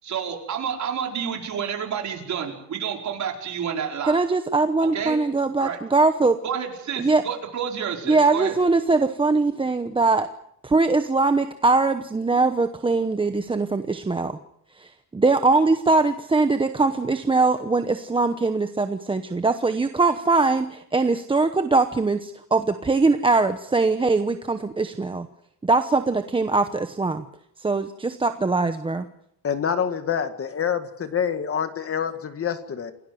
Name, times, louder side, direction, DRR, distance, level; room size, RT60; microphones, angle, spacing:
voice 1, 0.0-4.2 4.8-5.2 5.6-5.8 6.4-8.5, right 7 dB, 45° right, 2 dB, 4.9 m, -29 dB
voice 2, 4.1-6.4 7.0-7.2 8.1-10.3 10.6-14.4 14.8-25.3 25.6-27.2 27.6-29.1, right 3 dB, 15° right, 8 dB, 0.9 m, -21 dB
voice 3, 29.4-32.9, left 7 dB, 35° left, 9 dB, 1.9 m, -26 dB
28.5 x 18.5 x 7.8 m, 0.74 s
cardioid pair, 160°, 39 cm